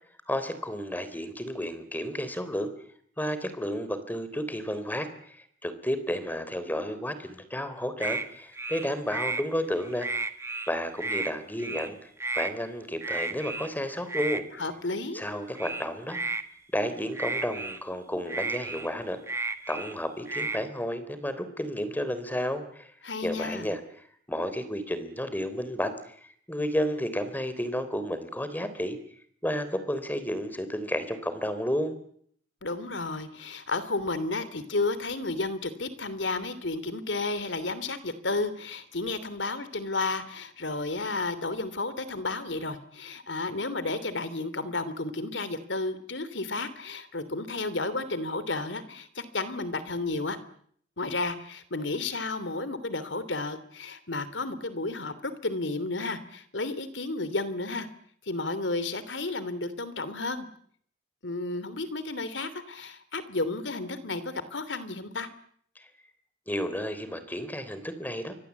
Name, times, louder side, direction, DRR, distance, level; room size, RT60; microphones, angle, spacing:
voice 1, 0.3-2.7 3.2-10.1 10.7-14.4 15.1-16.2 16.7-19.4 19.7-22.9 23.2-23.8 24.3-29.0 29.4-32.0 65.8-65.9 66.5-68.4, equal, 10° left, 12 dB, 3.6 m, -32 dB
sound 1, 8.0-8.3 8.5-9.4 9.8-10.7 11.0-11.3 11.6-11.9 12.2-12.5 13.0-13.7 14.1-14.4 15.6-16.4 17.1-17.8 18.3-19.9 20.3-20.6, right 3 dB, 15° right, 1.7 m, -32 dB
voice 2, 14.6-15.2 23.0-23.7 32.6-50.4 51.0-57.9 58.2-60.5 61.2-65.3, left 3 dB, 85° left, 14 dB, 3.0 m, -32 dB
29.0 x 24.5 x 8.4 m, 0.64 s
head